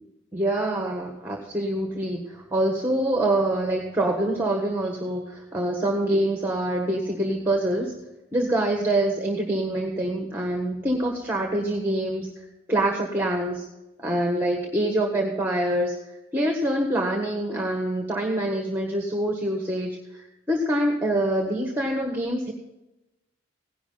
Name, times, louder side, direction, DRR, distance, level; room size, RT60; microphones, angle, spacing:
voice 1, 0.3-7.9 8.3-12.3 12.7-13.6 14.0-15.9 16.3-22.5, right 1 dB, 10° right, 2 dB, 1.4 m, -25 dB
16.5 x 11.0 x 3.9 m, 0.95 s
head